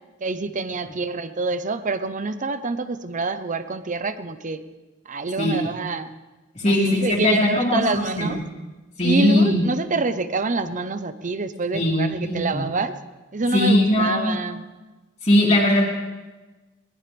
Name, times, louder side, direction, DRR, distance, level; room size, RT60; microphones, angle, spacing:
voice 1, 0.2-4.6 5.1-6.1 6.7-8.4 9.0-13.0 13.3-14.7, right 3 dB, 40° right, 11 dB, 0.8 m, -26 dB
voice 2, 6.5-8.4 9.0-9.7 11.7-12.6 13.5-14.4 15.2-15.8, left 1 dB, 35° left, -6 dB, 2.8 m, -20 dB
22.0 x 19.0 x 3.5 m, 1.2 s
head